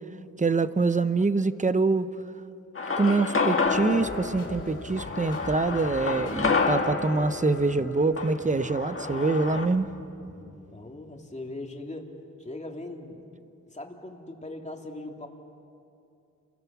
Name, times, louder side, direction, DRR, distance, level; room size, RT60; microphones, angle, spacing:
voice 1, 0.4-2.1 3.0-9.9, right 3 dB, 25° right, 12 dB, 0.8 m, -25 dB
sound 1, 2.8-9.7, left 4 dB, 40° left, 1.8 m, -29 dB
sound 2, 3.6-11.2, left 2 dB, 75° left, 5.4 m, -46 dB
voice 2, 10.7-12.1 12.4-13.3 13.7-15.3, left 2 dB, 20° left, 2 dB, 2.6 m, -39 dB
29.5 x 22.5 x 7.3 m, 2.7 s
wide cardioid pair, 95°, 32 cm